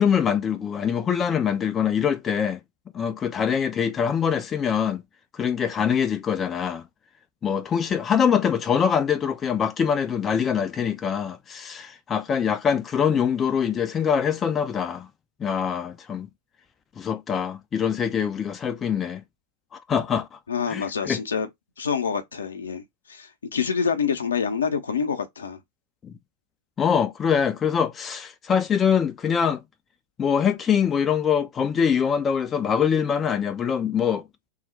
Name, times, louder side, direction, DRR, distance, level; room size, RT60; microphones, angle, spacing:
voice 1, 0.0-2.6 2.9-5.0 5.3-6.8 7.4-15.1 15.4-16.3 17.0-19.2 19.7-20.4 20.7-21.2 26.0-26.1 26.8-29.6 30.2-34.2, left 7 dB, 20° left, 0.3 m, -24 dB
voice 2, 20.5-21.5 21.8-25.6, left 6 dB, 70° left, 0.5 m, -27 dB
2.8 x 2.0 x 3.8 m
figure-of-eight pair, 90°, 0 cm